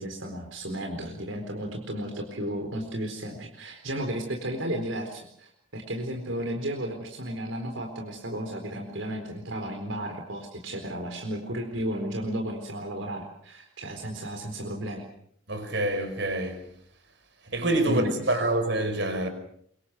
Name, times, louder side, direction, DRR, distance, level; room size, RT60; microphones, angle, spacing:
voice 1, 0.0-15.1 17.9-18.1, right 1 dB, 75° right, 4.2 m, -33 dB
voice 2, 15.5-16.7 17.5-19.3, right 1 dB, 60° right, 5.1 m, -26 dB
26.0 x 24.0 x 6.7 m
head